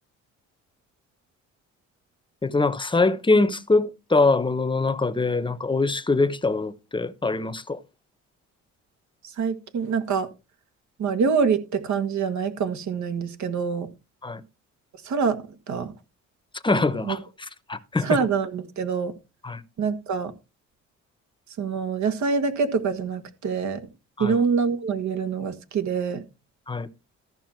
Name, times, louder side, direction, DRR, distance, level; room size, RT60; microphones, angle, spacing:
voice 1, 2.4-7.8 14.2-14.4 16.6-18.2 19.4-19.6 24.2-24.4 26.7-26.9, left 3 dB, 15° left, 0.9 m, -23 dB
voice 2, 9.4-10.3 11.0-13.9 15.0-15.4 15.7-15.9 17.0-17.2 18.0-19.1 19.8-20.3 21.6-23.8 24.2-26.2, right 5 dB, 70° right, 1.6 m, -25 dB
14.0 x 5.7 x 4.5 m
cardioid pair, 90°, 30 cm